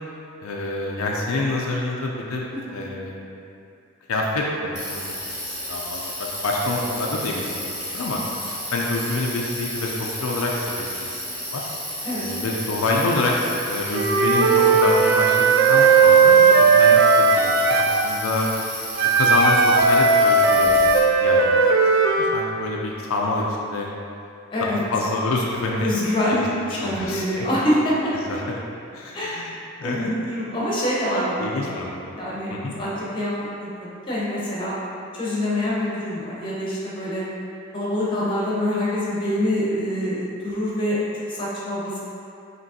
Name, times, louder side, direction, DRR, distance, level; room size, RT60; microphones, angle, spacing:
voice 1, 0.4-3.3 4.1-11.7 12.2-13.4 13.6-18.5 19.1-20.9 21.2-21.7 22.2-23.9 24.6-25.9 26.3-26.5 26.8-27.3 28.1-28.6 28.9-30.1 31.4-32.1 32.5-32.7, left 2 dB, 80° left, -2 dB, 0.5 m, -27 dB
Bicycle, 4.7-21.0, equal, 5° right, 1.4 m, -33 dB
Wind instrument woodwind instrument, 13.9-18.0 19.0-22.3, right 4 dB, 60° right, 0.4 m, -16 dB
voice 2, 24.5-24.8 25.8-28.1 29.1-29.5 29.8-31.8 32.2-33.3 33.6-34.8 35.1-37.2 37.7-42.0, left 1 dB, 25° left, -7 dB, 0.9 m, -25 dB
5.1 x 2.9 x 2.8 m, 2.6 s
head